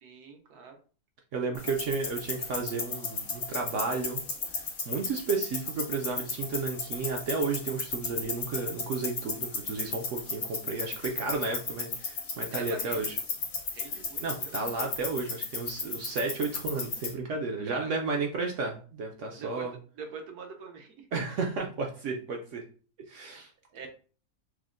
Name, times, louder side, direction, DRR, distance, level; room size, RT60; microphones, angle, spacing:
voice 1, 0.0-0.8 12.5-13.1 13.7-14.5 17.7-17.9 19.3-19.7 20.0-21.0 23.7-23.9, right 5 dB, 85° right, 4 dB, 1.3 m, -43 dB
voice 2, 1.3-4.2 4.5-13.2 14.2-19.7 21.1-22.6 23.1-23.5, right 4 dB, 65° right, 1 dB, 0.8 m, -33 dB
sound 1, 1.6-17.1, left 4 dB, 65° left, 1.4 m, -35 dB
6.0 x 2.1 x 2.4 m, 0.40 s
omnidirectional pair, 1.6 m